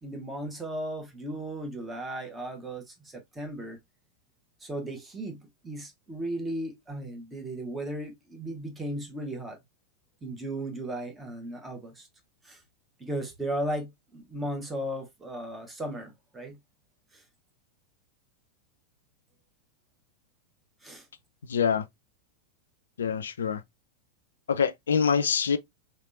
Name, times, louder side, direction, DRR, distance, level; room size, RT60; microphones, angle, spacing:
voice 1, 0.0-3.8 4.6-9.6 10.2-12.1 12.4-12.6 13.0-16.6 17.1-17.2 20.8-21.1, right 1 dB, 10° right, 1.1 m, -36 dB
voice 2, 21.5-21.9 23.0-23.6 24.5-25.6, left 6 dB, 65° left, 0.4 m, -25 dB
3.3 x 3.2 x 2.5 m
figure-of-eight pair, 90°, 0 cm